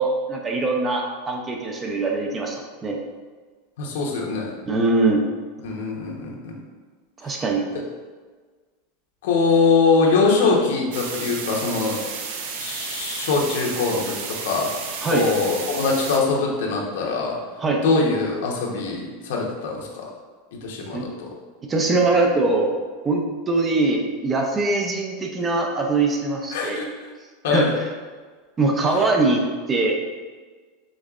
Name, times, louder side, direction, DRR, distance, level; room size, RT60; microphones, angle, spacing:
voice 1, 0.0-3.0 4.7-5.2 7.2-7.6 15.0-15.3 17.6-17.8 20.9-21.1 21.6-22.7 23.0-26.8 27.5-27.8 28.6-29.4 29.7-29.9, right 3 dB, 15° right, 2 dB, 0.4 m, -22 dB
voice 2, 3.8-4.5 5.6-6.5 9.2-12.0 12.6-14.1 14.4-14.7 15.1-17.4 17.8-20.1 20.6-21.3 26.5-26.8 27.4-27.7, left 4 dB, 70° left, -1 dB, 0.9 m, -22 dB
sound 1, 10.9-16.2, right 5 dB, 60° right, 0.6 m, -32 dB
5.2 x 3.7 x 2.4 m, 1.4 s
supercardioid pair, 170°, 0 cm